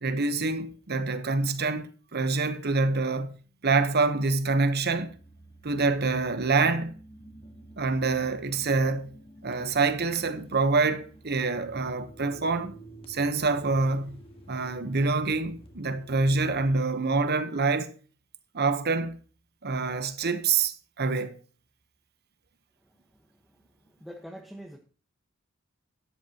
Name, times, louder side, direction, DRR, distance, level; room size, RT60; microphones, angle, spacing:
voice 1, 0.0-3.4 3.6-5.1 5.6-6.9 7.8-9.1 9.4-12.7 13.1-14.2 14.5-17.9 18.5-19.2 19.6-21.4, right 3 dB, 50° right, 1.0 m, -26 dB
sound 1, 4.8-16.8, right 1 dB, 30° left, 1.7 m, -50 dB
voice 2, 24.0-24.8, equal, ahead, 1.2 m, -44 dB
12.5 x 10.5 x 2.9 m
head